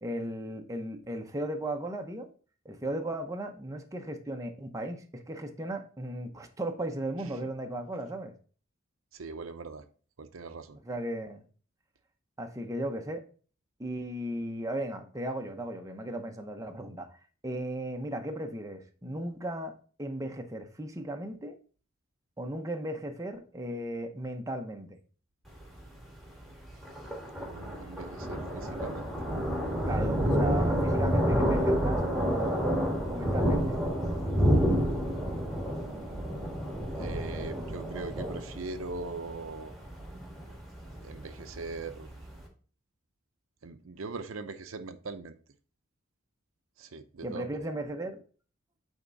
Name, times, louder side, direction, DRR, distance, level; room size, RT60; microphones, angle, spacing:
voice 1, 0.0-2.3 2.6-8.3 10.8-11.4 12.4-13.2 13.8-21.6 22.4-25.0 29.9-32.8 33.1-33.8 47.2-48.2, right 1 dB, 15° right, 0.8 m, -36 dB
voice 2, 9.1-9.8 10.2-10.8 27.5-29.1 30.3-30.5 37.0-39.7 41.0-42.1 43.6-45.3 46.8-47.7, right 3 dB, 85° right, 0.7 m, -41 dB
Thunder, 25.5-42.4, equal, ahead, 1.8 m, -30 dB
8.8 x 3.6 x 4.0 m
head